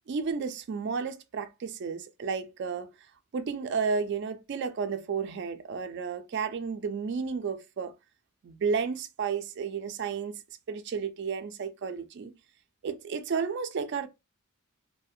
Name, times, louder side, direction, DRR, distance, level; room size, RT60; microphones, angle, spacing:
voice 1, 0.1-2.9 3.3-7.9 8.4-10.4 10.7-12.3 12.8-14.1, right 5 dB, 50° right, 0.3 m, -32 dB
2.3 x 2.1 x 2.6 m
head